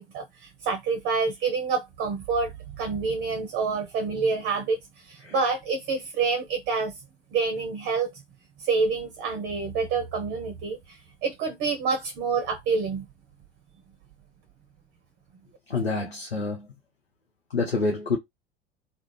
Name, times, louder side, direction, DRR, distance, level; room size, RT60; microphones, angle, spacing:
voice 1, 0.0-2.5 2.8-6.9 7.3-8.1 8.6-13.0, right 4 dB, 35° right, 0.6 m, -27 dB
voice 2, 15.7-16.7 17.5-18.2, left 3 dB, 90° left, 0.6 m, -27 dB
2.4 x 2.0 x 3.0 m
figure-of-eight pair, 70°, 30 cm